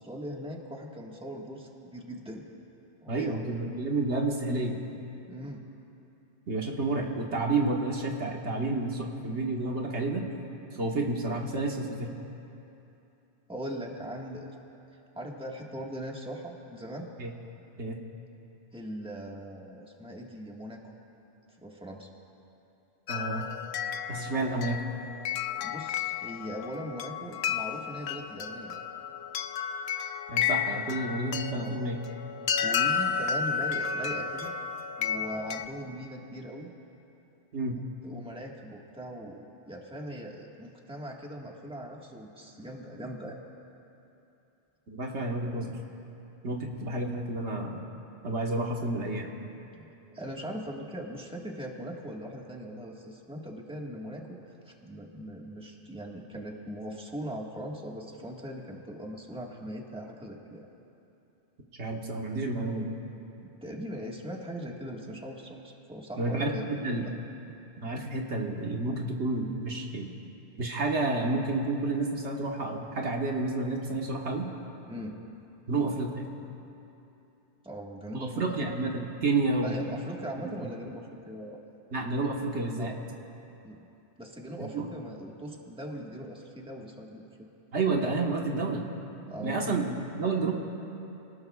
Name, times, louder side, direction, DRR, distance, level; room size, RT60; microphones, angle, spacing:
voice 1, 0.0-2.4 3.0-3.4 5.3-5.6 13.5-14.5 15.1-17.1 18.7-20.8 21.6-22.1 25.6-28.8 31.5-31.8 32.6-34.5 35.0-36.7 38.0-43.4 49.7-54.4 54.6-60.7 63.4-66.9 74.9-75.2 77.6-78.7 79.6-81.6 82.8-83.0 83.6-83.9 84.2-87.5 89.3-89.7, equal, 5° right, -2 dB, 1.6 m, -40 dB
voice 2, 3.1-4.8 6.5-10.2 10.7-12.1 17.2-17.3 17.8-18.0 23.1-23.5 24.1-24.8 30.3-32.0 37.5-37.8 44.9-45.8 46.4-47.8 48.2-49.3 61.8-62.9 66.2-67.0 67.8-70.1 70.6-74.5 75.7-76.3 78.1-79.8 81.9-82.9 84.6-84.9 87.7-88.9 89.4-90.5, right 2 dB, 80° right, 0 dB, 1.7 m, -30 dB
sound 1, 23.1-35.7, left 7 dB, 70° left, 0.8 m, -32 dB
28.5 x 19.0 x 2.4 m, 2.9 s
omnidirectional pair, 1.2 m